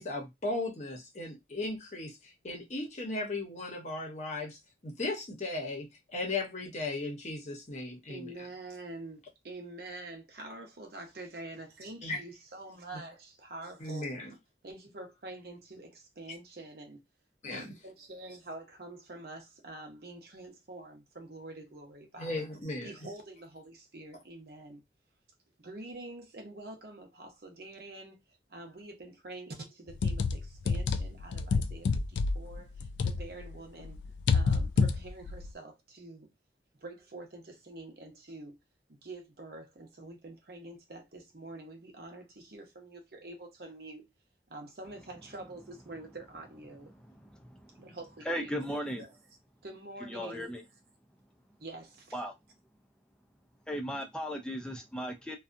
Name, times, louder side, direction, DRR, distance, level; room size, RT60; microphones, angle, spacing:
voice 1, 0.0-4.6 4.8-8.3 12.0-12.2 13.8-14.3 17.4-17.7 22.2-22.9, left 2 dB, 40° left, 0.8 m, -36 dB
voice 2, 8.1-14.1 14.6-17.0 17.5-22.4 22.8-24.8 25.6-34.0 34.3-36.3 36.8-38.6 38.9-44.1 44.5-46.9 47.8-49.2 49.6-50.5 51.6-52.2, right 2 dB, 55° right, 0.8 m, -46 dB
sound 1, 29.9-33.5 33.8-35.5, left 4 dB, 75° left, 0.3 m, -28 dB
voice 3, 47.2-47.8 48.3-49.0 50.0-50.6 52.1-52.3 53.7-55.4, equal, 5° left, 0.4 m, -36 dB
2.6 x 2.3 x 2.5 m
head